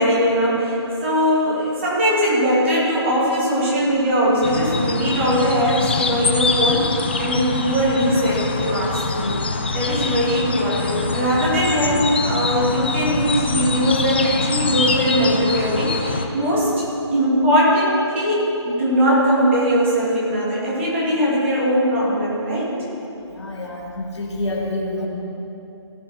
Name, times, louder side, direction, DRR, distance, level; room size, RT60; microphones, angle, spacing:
voice 1, 0.0-16.8 17.1-22.7, equal, 25° right, -7 dB, 2.9 m, -20 dB
sound 1, 4.4-16.3, left 4 dB, 20° left, 0.4 m, -24 dB
voice 2, 23.3-25.1, left 1 dB, 75° left, -1 dB, 2.3 m, -27 dB
17.0 x 6.8 x 4.7 m, 2.9 s
hypercardioid pair, 170°, 15 cm